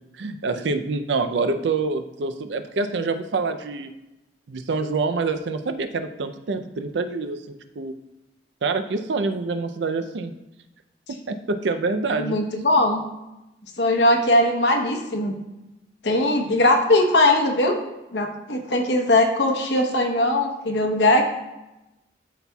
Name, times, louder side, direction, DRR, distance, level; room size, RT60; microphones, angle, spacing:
voice 1, 0.2-3.9 4.5-7.9 8.6-10.3 11.3-12.4 16.5-16.6, right 3 dB, 80° right, 9 dB, 0.5 m, -26 dB
voice 2, 12.1-13.1 13.8-15.4 16.0-17.7 18.1-21.2, left 1 dB, 75° left, 3 dB, 0.9 m, -20 dB
12.5 x 4.1 x 2.3 m, 0.97 s
head